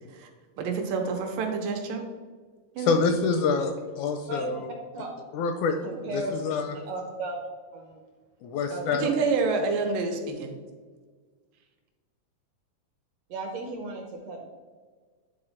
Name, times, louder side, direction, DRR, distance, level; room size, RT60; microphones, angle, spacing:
voice 1, 0.6-2.0 2.8-2.9 8.9-10.6, right 4 dB, 85° right, 3 dB, 2.6 m, -28 dB
voice 2, 2.8-4.7 5.3-5.8 6.1-6.8 8.4-9.1, left 4 dB, 80° left, 6 dB, 1.8 m, -26 dB
voice 3, 5.8-6.3 6.9-7.4 7.7-8.0 8.7-9.1 13.3-14.5, right 2 dB, 70° right, 1 dB, 1.7 m, -35 dB
9.9 x 3.8 x 4.3 m, 1.5 s
omnidirectional pair, 3.8 m